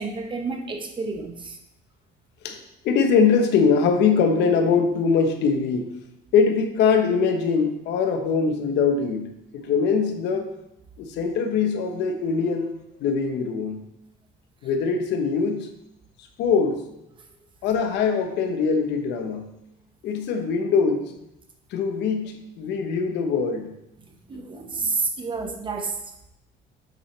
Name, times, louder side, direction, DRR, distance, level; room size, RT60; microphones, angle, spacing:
voice 1, 0.0-1.6 24.3-25.9, right 4 dB, 25° right, 4 dB, 1.0 m, -29 dB
voice 2, 2.4-6.0 6.3-10.5 11.0-12.7 13.0-13.8 14.6-15.7 16.4-16.8 17.6-19.5 20.0-21.1 21.7-23.8, left 5 dB, 75° left, 6 dB, 1.1 m, -22 dB
8.0 x 6.0 x 3.3 m, 0.84 s
cardioid pair, 140°, 18 cm